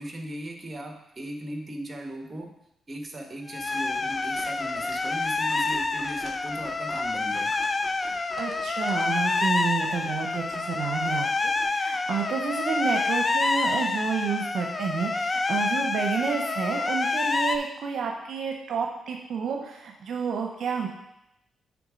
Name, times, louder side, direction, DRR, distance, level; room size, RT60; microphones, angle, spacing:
voice 1, 0.0-2.5 2.9-7.5, right 1 dB, 30° right, 3 dB, 1.3 m, -38 dB
sound 1, 3.5-17.6, left 3 dB, 35° left, 0.5 m, -27 dB
sound 2, 3.6-11.7, right 1 dB, ahead, 1.8 m, -47 dB
voice 2, 8.0-20.9, right 6 dB, 75° right, 2 dB, 0.7 m, -30 dB
7.1 x 3.6 x 5.0 m, 0.85 s
cardioid pair, 65°, 0 cm